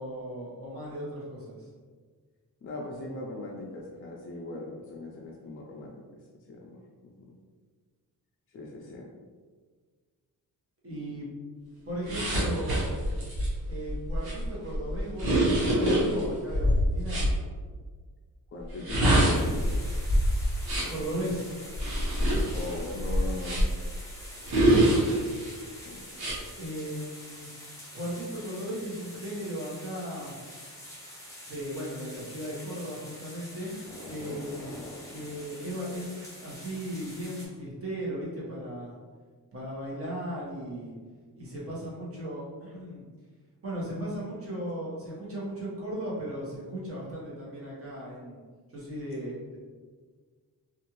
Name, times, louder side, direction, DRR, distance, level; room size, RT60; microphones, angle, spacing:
voice 1, 0.0-1.7 10.8-11.3 11.8-12.9 13.6-17.3 20.9-21.5 26.6-27.5 27.9-30.4 31.5-33.8 34.0-34.7 35.1-39.0 39.5-40.9 41.3-43.0 43.6-48.4 48.7-49.6, equal, 40° right, -6 dB, 1.1 m, -36 dB
voice 2, 2.6-5.9 6.5-6.8 7.0-7.2 8.5-9.1 18.5-19.7 20.7-21.2 22.5-23.7 25.8-26.1 34.0-34.5, left 2 dB, 40° left, -2 dB, 0.4 m, -40 dB
sound 1, 12.1-17.3 18.7-21.0 21.7-23.9 24.5-25.5 26.1-26.4, right 1 dB, 85° right, 1.0 m, -25 dB
sound 2, 19.3-37.5, equal, 10° left, 0.9 m, -46 dB
2.6 x 2.4 x 2.9 m, 1.6 s
cardioid pair, 95°, 36 cm